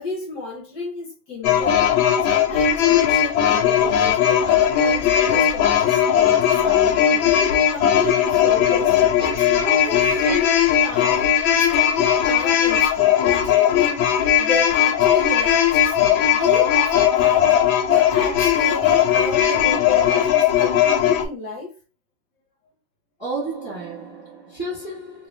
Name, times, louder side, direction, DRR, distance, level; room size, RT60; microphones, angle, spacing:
voice 1, 0.0-1.9 2.2-7.3 7.7-14.1 14.4-17.5 17.9-21.7, left 3 dB, 65° left, 1.6 m, -32 dB
sound 1, 1.4-21.3, left 9 dB, 90° left, 1.4 m, -18 dB
voice 2, 23.2-25.3, right 2 dB, 15° right, 1.7 m, -31 dB
3.1 x 3.0 x 3.3 m
omnidirectional pair, 2.1 m